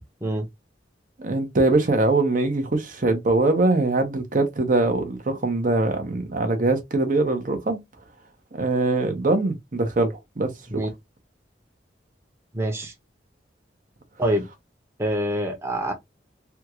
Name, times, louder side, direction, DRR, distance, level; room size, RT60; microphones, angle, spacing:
voice 1, 1.2-7.8 8.5-10.5, right 2 dB, 45° right, 0.8 m, -22 dB
voice 2, 12.5-12.9 14.2-14.5 15.0-15.9, right 1 dB, 15° right, 0.9 m, -25 dB
3.5 x 2.3 x 3.0 m
head